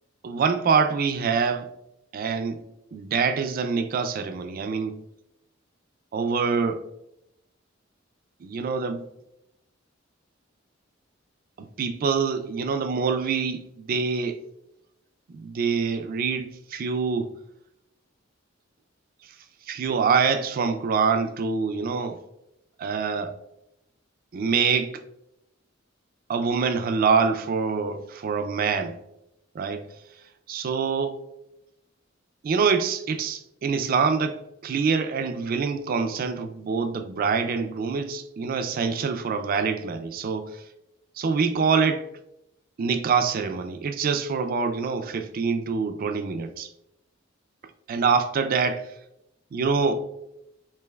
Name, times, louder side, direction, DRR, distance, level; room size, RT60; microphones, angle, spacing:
voice 1, 0.2-1.7 2.1-2.6 2.9-5.0 6.1-6.8 8.4-9.0 11.6-14.4 15.3-17.3 19.7-22.2 22.8-23.3 24.3-24.9 26.3-29.0 29.5-29.9 30.5-31.2 32.4-40.6 41.2-42.1 42.8-46.7 47.9-48.9 49.5-50.0, right 5 dB, 45° right, 0.3 m, -25 dB
4.4 x 3.2 x 2.2 m
head